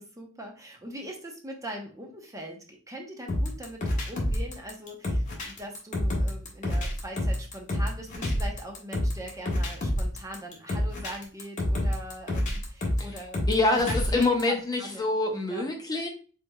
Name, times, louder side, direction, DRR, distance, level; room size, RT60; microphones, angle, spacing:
voice 1, 0.0-15.1 15.5-15.7, right 1 dB, 15° right, 1 dB, 0.8 m, -41 dB
sound 1, 3.3-14.4, left 1 dB, 35° left, 1.4 m, -28 dB
voice 2, 13.5-16.1, left 2 dB, 20° left, 2 dB, 0.7 m, -26 dB
4.8 x 4.2 x 2.3 m, 0.39 s
head